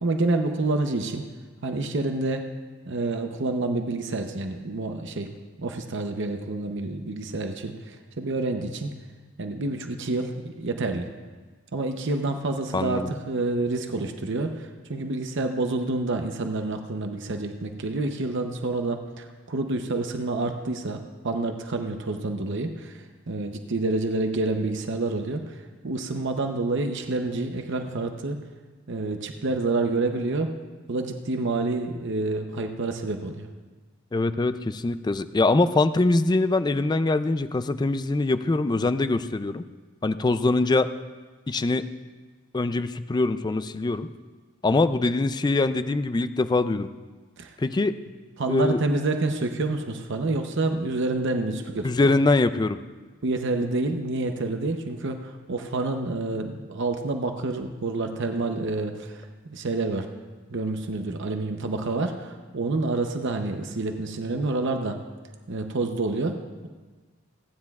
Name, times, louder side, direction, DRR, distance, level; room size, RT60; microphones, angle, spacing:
voice 1, 0.0-1.2 1.6-2.5 2.9-5.3 5.6-8.9 9.4-11.1 11.7-28.4 28.9-30.5 30.9-33.5 47.4-47.6 48.4-51.9 53.2-60.1 60.5-65.0 65.5-66.7, right 2 dB, 60° right, 5 dB, 0.8 m, -28 dB
voice 2, 12.7-13.1 34.1-39.6 40.0-40.9 41.5-41.9 42.5-44.1 44.6-46.9 47.6-48.0 48.5-48.8 51.8-52.8, left 2 dB, 20° left, 12 dB, 0.4 m, -23 dB
28.5 x 9.8 x 2.4 m, 1.4 s
head